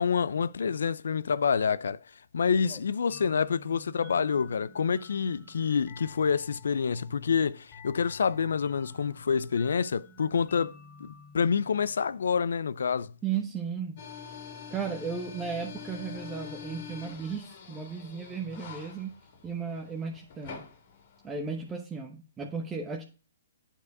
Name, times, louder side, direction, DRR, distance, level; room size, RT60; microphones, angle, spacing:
voice 1, 0.0-2.0 2.3-10.7 11.0-13.1, left 6 dB, 75° left, 0.5 m, -27 dB
sound 1, 3.1-12.5, left 4 dB, 25° left, 2.5 m, -52 dB
voice 2, 13.2-14.0 14.7-19.2 19.4-20.6 21.2-23.0, right 6 dB, 15° right, 0.9 m, -35 dB
sound 2, 14.0-21.7, left 6 dB, 55° left, 2.2 m, -45 dB
8.9 x 4.7 x 4.7 m
hypercardioid pair, 140°, 0 cm